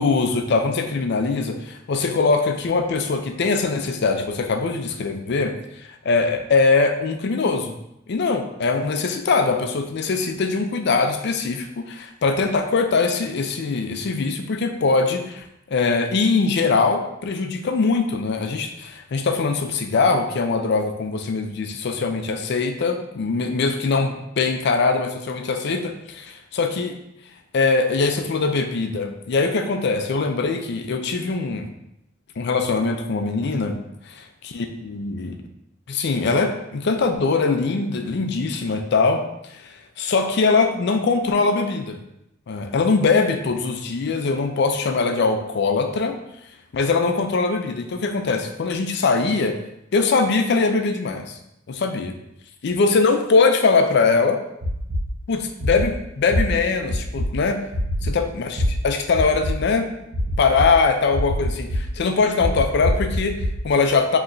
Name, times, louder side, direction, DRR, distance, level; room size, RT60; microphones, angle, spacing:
voice 1, 0.0-5.5 5.9-7.7 8.1-26.3 26.5-26.9 27.5-31.7 32.4-33.8 34.1-35.4 35.9-39.2 39.5-42.0 42.5-46.2 46.7-49.5 49.9-51.4 51.7-52.1 52.6-54.4 55.3-57.6 58.0-59.9 60.4-64.2, left 4 dB, 55° left, 6 dB, 0.4 m, -22 dB
sound 1, 54.6-55.0 55.6-55.8 56.3-56.4 56.9-57.2 57.7-58.1 58.6-58.7 59.1-59.5 60.1-60.6 61.1-61.8 62.4-63.5, equal, 55° right, 1.4 m, -23 dB
5.4 x 2.9 x 2.6 m, 0.82 s
head